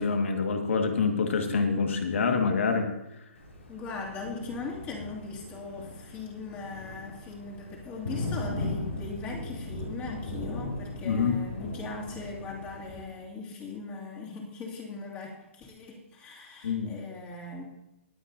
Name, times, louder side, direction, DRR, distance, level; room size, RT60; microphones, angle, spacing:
voice 1, 0.0-2.9 11.0-11.4 16.6-17.0, left 5 dB, 70° left, 5 dB, 1.8 m, -26 dB
Thunder, 3.4-13.0, left 2 dB, 85° left, 4.3 m, -38 dB
voice 2, 3.7-17.6, left 3 dB, 20° left, -2 dB, 2.5 m, -39 dB
22.0 x 8.1 x 2.7 m, 0.91 s
hypercardioid pair, 145°, 7 cm